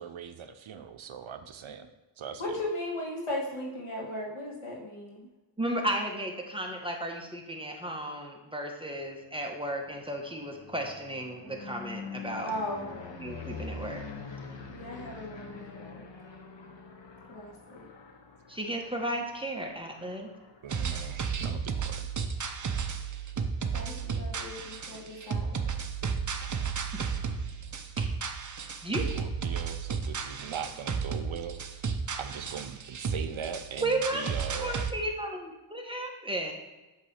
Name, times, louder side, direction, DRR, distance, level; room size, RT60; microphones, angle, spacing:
voice 1, 0.0-1.9 2.2-2.6 20.6-22.1 29.1-31.8 32.2-34.9, right 7 dB, 75° right, 9 dB, 0.7 m, -40 dB
voice 2, 2.4-5.2 12.5-13.0 14.7-16.0 17.3-17.8 23.7-25.7, left 1 dB, 85° left, -3 dB, 2.1 m, -37 dB
voice 3, 5.6-12.5 13.2-14.0 18.5-20.3 26.9-27.0 28.8-29.0 33.8-34.2 34.6-36.5, right 1 dB, 10° right, 1 dB, 1.1 m, -34 dB
sound 1, 9.2-23.2 23.7-24.1 24.4-24.5 24.8-24.9 25.0-27.9, left 4 dB, 65° left, 1.2 m, -46 dB
sound 2, 20.7-34.9, right 6 dB, 40° right, 0.6 m, -33 dB
8.3 x 3.2 x 6.4 m, 1.1 s
wide cardioid pair, 95°, 48 cm